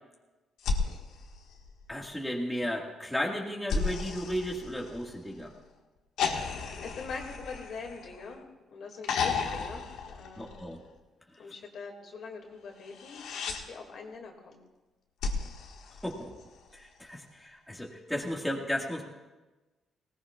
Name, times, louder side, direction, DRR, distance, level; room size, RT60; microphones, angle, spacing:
sound 1, 0.6-2.2 3.7-5.4 6.2-8.5 9.0-10.9 12.8-13.6 15.2-16.7 18.2-18.3, left 5 dB, 90° left, 1.6 m, -34 dB
voice 1, 1.9-5.5 10.4-10.8 16.0-16.3 16.7-19.0, equal, 5° left, -1 dB, 1.8 m, -34 dB
voice 2, 6.8-8.4 8.7-10.6 11.4-14.6, left 4 dB, 60° left, 2 dB, 2.2 m, -43 dB
19.5 x 18.5 x 2.4 m, 1.2 s
cardioid pair, 125°, 0 cm